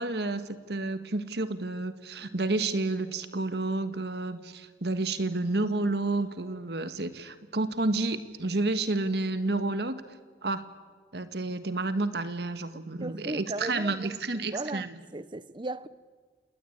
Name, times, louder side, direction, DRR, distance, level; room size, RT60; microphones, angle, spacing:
voice 1, 0.0-10.0 10.4-10.6 11.1-15.0, right 2 dB, 65° right, 1.6 m, -30 dB
voice 2, 13.0-15.9, right 2 dB, 30° right, 0.7 m, -37 dB
28.0 x 19.5 x 8.9 m
head